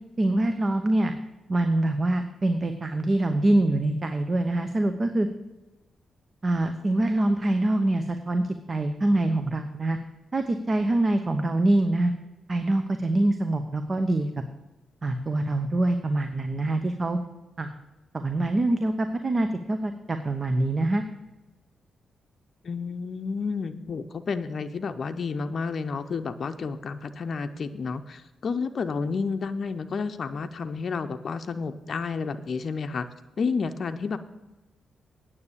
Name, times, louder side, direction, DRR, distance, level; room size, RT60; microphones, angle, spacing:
voice 1, 0.2-1.1 1.5-5.3 6.4-10.0 10.3-12.1 12.5-14.3 15.0-17.2 17.6-17.7 18.1-21.0, right 2 dB, 40° right, 8 dB, 0.9 m, -24 dB
voice 2, 22.6-33.1 33.4-34.2, left 5 dB, 55° left, 8 dB, 0.6 m, -30 dB
9.5 x 7.0 x 6.9 m, 1.1 s
hypercardioid pair, 40°, 0 cm